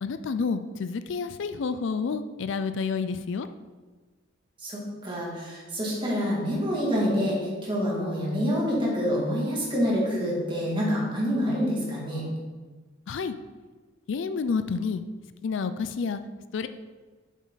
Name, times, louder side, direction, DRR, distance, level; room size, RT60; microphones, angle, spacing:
voice 1, 0.0-3.5 13.1-13.4 14.1-15.0 15.4-16.2 16.5-16.7, left 5 dB, 65° left, 11 dB, 0.4 m, -29 dB
voice 2, 4.6-12.2, equal, 25° right, -5 dB, 2.4 m, -27 dB
7.5 x 7.2 x 3.9 m, 1.4 s
head